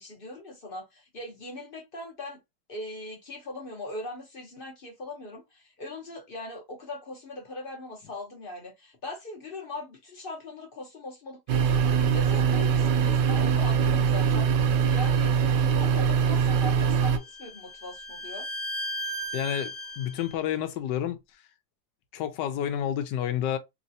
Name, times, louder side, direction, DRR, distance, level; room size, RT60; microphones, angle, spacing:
voice 1, 0.0-2.4 2.7-15.4 15.6-18.5, left 2 dB, 55° left, 0.6 m, -40 dB
sound 1, 11.5-17.2, right 7 dB, 70° right, 1.1 m, -23 dB
Bowed string instrument, 16.6-20.4, right 1 dB, 40° left, 0.9 m, -36 dB
voice 2, 19.3-21.2 22.1-23.6, left 10 dB, 75° left, 1.1 m, -29 dB
3.1 x 2.8 x 2.6 m
omnidirectional pair, 2.1 m